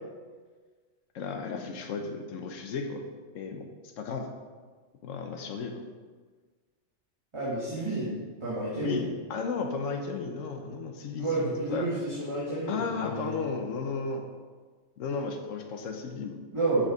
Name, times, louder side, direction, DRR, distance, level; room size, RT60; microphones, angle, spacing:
voice 1, 1.1-3.0 3.3-3.7 4.0-4.3 5.0-5.8 8.8-11.9 12.7-14.3 15.0-16.4, left 4 dB, 85° left, 4 dB, 1.1 m, -34 dB
voice 2, 7.3-8.1 8.4-9.0 11.1-13.3 16.5-16.8, right 2 dB, 25° right, -9 dB, 1.8 m, -30 dB
6.7 x 6.3 x 4.8 m, 1.5 s
omnidirectional pair, 1.3 m